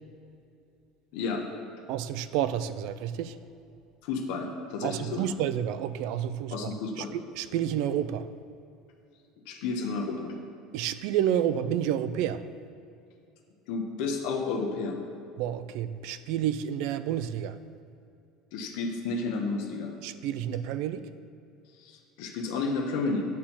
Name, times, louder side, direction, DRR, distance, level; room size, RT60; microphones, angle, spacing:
voice 1, 1.1-1.5 4.0-5.3 6.5-7.1 9.5-10.3 13.7-15.0 18.5-19.9 21.8-23.3, left 4 dB, 70° left, 2 dB, 1.0 m, -31 dB
voice 2, 1.9-3.4 4.8-6.7 7.0-8.3 10.7-12.4 15.4-17.6 20.0-21.0, right 10 dB, 65° right, 13 dB, 0.4 m, -30 dB
9.5 x 4.5 x 7.2 m, 2.6 s
cardioid pair, 155°, 0 cm